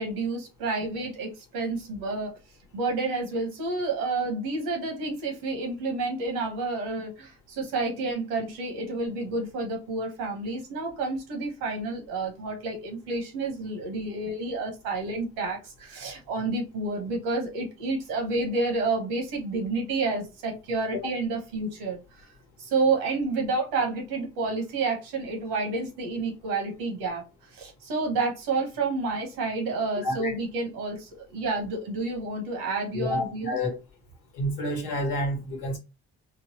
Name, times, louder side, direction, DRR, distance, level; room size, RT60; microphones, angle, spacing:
voice 1, 0.0-2.3 2.7-22.3 22.6-27.2 27.5-33.6, right 3 dB, 90° right, 1.1 m, -29 dB
voice 2, 30.0-30.3 32.9-33.7 34.3-35.8, left 1 dB, 90° left, 1.2 m, -29 dB
3.8 x 2.0 x 2.9 m
supercardioid pair, 55°, 35 cm